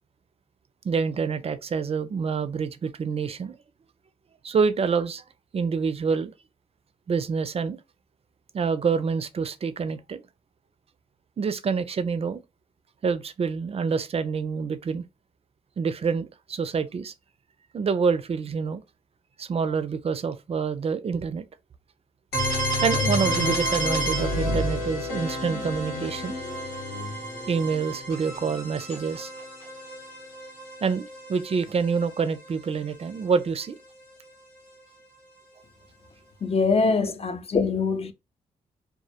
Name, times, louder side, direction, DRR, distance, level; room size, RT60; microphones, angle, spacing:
voice 1, 0.8-3.6 4.4-5.2 5.5-6.3 7.1-7.8 8.5-10.2 11.4-12.4 13.0-15.0 15.8-17.1 17.7-18.8 19.4-21.4 22.8-26.4 27.5-29.3 30.8-33.8, right 5 dB, 40° right, 0.4 m, -27 dB
sound 1, 22.3-32.1, equal, 85° left, 1.0 m, -29 dB
voice 2, 36.4-38.1, left 4 dB, 35° left, 0.5 m, -23 dB
2.2 x 2.0 x 2.8 m
supercardioid pair, 45°, 16 cm